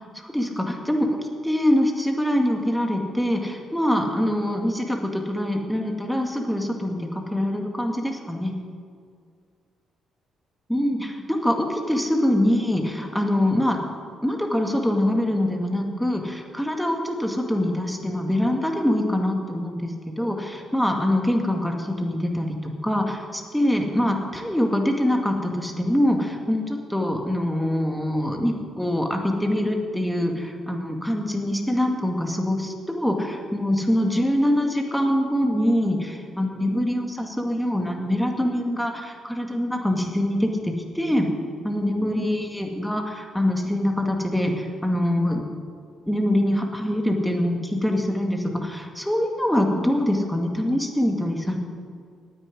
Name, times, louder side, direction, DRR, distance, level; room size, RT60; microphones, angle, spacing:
voice 1, 0.1-1.1 1.4-8.5 10.7-13.8 14.2-41.3 41.6-45.4 46.1-51.6, left 1 dB, 5° left, 2 dB, 1.9 m, -24 dB
9.9 x 8.9 x 9.7 m, 2.2 s
cardioid pair, 90°, 0 cm